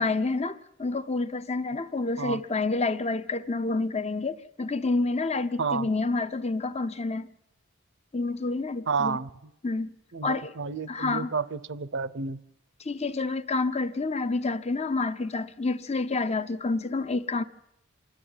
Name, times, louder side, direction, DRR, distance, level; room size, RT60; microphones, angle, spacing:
voice 1, 0.0-7.3 8.1-9.2 9.6-9.9 10.2-10.5 10.9-11.3 12.8-17.4, left 3 dB, 30° left, 0.8 m, -28 dB
voice 2, 8.9-9.3 10.1-12.4, right 5 dB, 60° right, 0.7 m, -30 dB
26.5 x 11.5 x 9.8 m
head